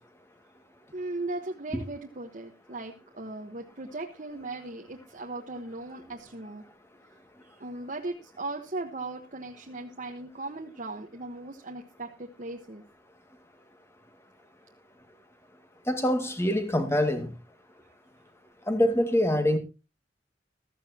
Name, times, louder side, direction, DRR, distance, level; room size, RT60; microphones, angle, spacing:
voice 1, 0.9-6.6 7.5-12.8, right 2 dB, 45° right, 1.3 m, -38 dB
voice 2, 15.9-17.3 18.7-19.6, left 1 dB, 15° left, 2.1 m, -24 dB
15.0 x 14.0 x 2.9 m
head